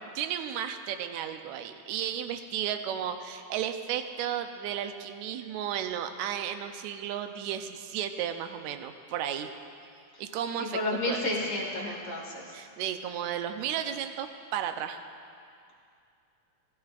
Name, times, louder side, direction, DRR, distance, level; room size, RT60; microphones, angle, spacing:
voice 1, 0.2-9.5 10.2-11.5 12.5-15.0, right 9 dB, 80° right, 7 dB, 1.9 m, -34 dB
voice 2, 10.7-12.4, left 2 dB, 45° left, -3 dB, 2.0 m, -31 dB
20.0 x 13.0 x 2.5 m, 2.4 s
omnidirectional pair, 3.4 m